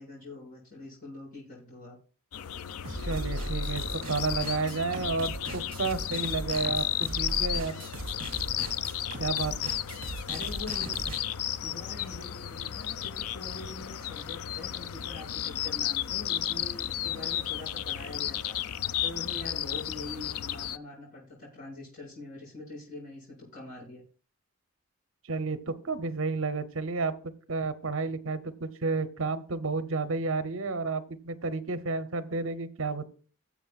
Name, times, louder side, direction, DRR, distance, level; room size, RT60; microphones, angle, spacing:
voice 1, 0.0-2.0 10.3-11.0 11.6-24.0, left 2 dB, 40° left, -10 dB, 5.8 m, -44 dB
sound 1, 2.3-20.8, left 11 dB, 85° left, 0.4 m, -33 dB
sound 2, 2.8-11.2, right 1 dB, 40° right, 2.8 m, -38 dB
voice 2, 3.0-7.8 9.2-9.7 25.3-27.1 27.5-33.0, right 3 dB, 65° right, 11 dB, 0.8 m, -31 dB
18.5 x 7.3 x 2.4 m, 0.40 s
head